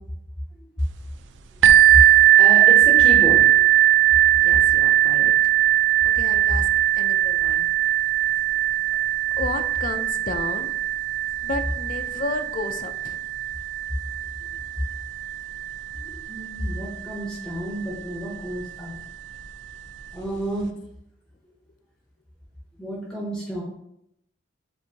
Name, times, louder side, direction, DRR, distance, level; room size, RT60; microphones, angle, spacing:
sound 1, 1.6-17.2 17.9-18.0 18.6-18.7, right 13 dB, 90° right, 0.4 m, -19 dB
voice 1, 2.4-3.7 15.9-18.9 20.1-20.7 22.8-23.6, right 1 dB, 5° left, -5 dB, 0.8 m, -31 dB
voice 2, 4.4-5.3 6.0-6.7 7.0-7.7 8.9-9.0 9.4-10.8 11.4-13.2, left 3 dB, 45° left, 7 dB, 0.4 m, -33 dB
7.3 x 2.6 x 2.8 m, 0.78 s
head